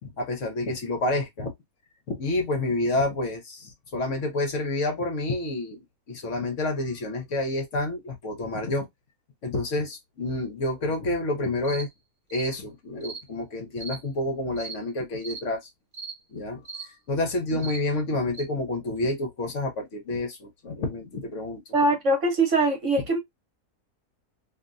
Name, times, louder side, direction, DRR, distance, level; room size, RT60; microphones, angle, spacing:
voice 1, 0.0-1.5 2.1-5.8 6.1-8.9 9.4-11.9 12.3-15.6 16.3-21.6, left 2 dB, 55° left, 1.1 m, -29 dB
sound 1, 11.6-11.8 12.3-12.5 13.0-13.2 13.8-14.0 14.6-14.8 15.2-15.4 15.9-16.1 16.7-16.9 17.6-17.8 18.3-18.4, right 4 dB, 15° right, 1.1 m, -37 dB
voice 2, 21.7-23.2, right 2 dB, 60° right, 1.0 m, -22 dB
2.8 x 2.7 x 2.4 m
omnidirectional pair, 1.6 m